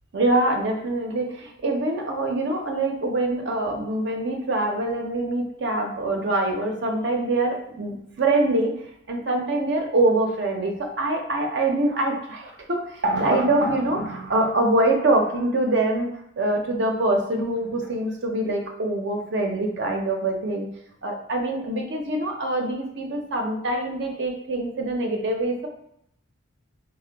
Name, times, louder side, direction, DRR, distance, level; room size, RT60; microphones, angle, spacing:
voice 1, 0.1-8.7 9.1-16.1 16.4-20.7 21.0-25.7, right 2 dB, 60° right, 2 dB, 0.6 m, -24 dB
3.7 x 2.1 x 3.3 m, 0.74 s
head